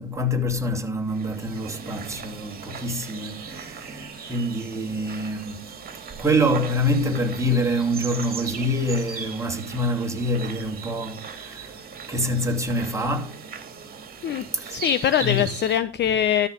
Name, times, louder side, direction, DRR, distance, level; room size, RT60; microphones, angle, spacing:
voice 1, 0.0-5.7 6.2-11.8 12.1-13.4 14.5-14.8 15.2-15.5, equal, 10° right, 2.6 m, -26 dB
sound 1, 1.1-15.8, right 6 dB, 30° right, 2.6 m, -38 dB
voice 2, 14.2-16.5, left 9 dB, 35° left, 0.7 m, -23 dB
13.0 x 6.6 x 5.2 m
hypercardioid pair, 80°, 31 cm